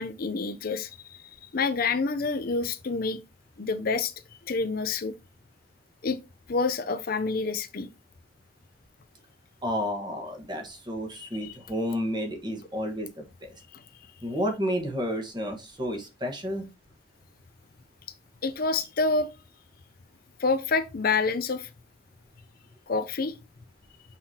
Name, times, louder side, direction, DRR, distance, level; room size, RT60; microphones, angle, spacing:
voice 1, 0.0-3.2 3.6-4.1 4.5-5.1 6.0-6.2 6.5-7.9 11.2-11.5 13.7-13.8 18.4-19.3 20.4-21.7 22.9-23.4, left 4 dB, 50° left, 0.5 m, -28 dB
voice 2, 9.6-13.6 14.2-16.6, equal, 25° right, 1.4 m, -31 dB
6.2 x 5.7 x 2.8 m
head